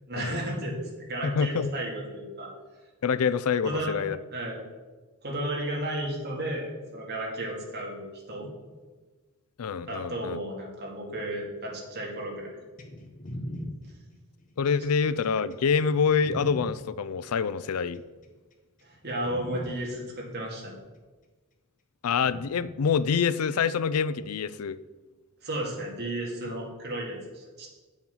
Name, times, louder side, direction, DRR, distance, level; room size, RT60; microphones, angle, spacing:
voice 1, 0.1-2.5 3.6-3.9 4.3-4.6 5.2-6.7 6.9-8.5 9.9-12.6 18.8-20.7 25.4-27.7, right 1 dB, 50° right, -2 dB, 2.5 m, -33 dB
voice 2, 1.2-1.7 3.0-4.2 9.6-10.4 14.6-18.0 22.0-24.8, left 6 dB, 85° left, 17 dB, 0.4 m, -26 dB
sound 1, 12.8-16.7 17.7-18.3 18.8-18.9 19.3-19.7 20.8-20.9 22.3-22.7 23.9-24.0, equal, 35° left, 1.1 m, -40 dB
9.2 x 7.1 x 5.6 m, 1.3 s
head